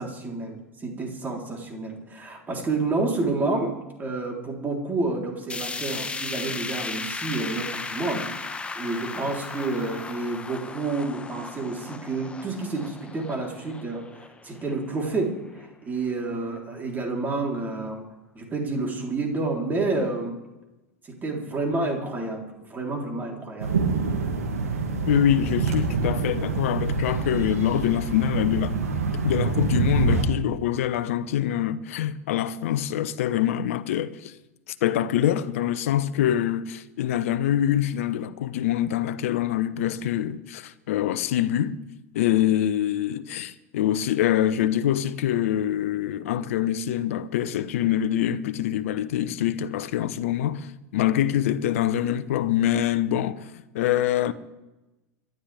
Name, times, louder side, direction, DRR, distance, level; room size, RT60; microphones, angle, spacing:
voice 1, 0.0-18.1 18.4-20.4 21.1-23.7, right 3 dB, 20° right, 3.7 m, -29 dB
sound 1, 5.5-15.7 16.1-16.2 16.5-16.6 17.5-17.6, left 4 dB, 15° left, 1.1 m, -36 dB
sound 2, 23.6-30.2, right 4 dB, 80° right, 2.4 m, -26 dB
voice 2, 25.1-28.8 29.2-34.3 34.7-41.8 42.1-54.3, left 11 dB, 65° left, 0.9 m, -25 dB
27.0 x 12.0 x 3.5 m
hypercardioid pair, 85°, 8 cm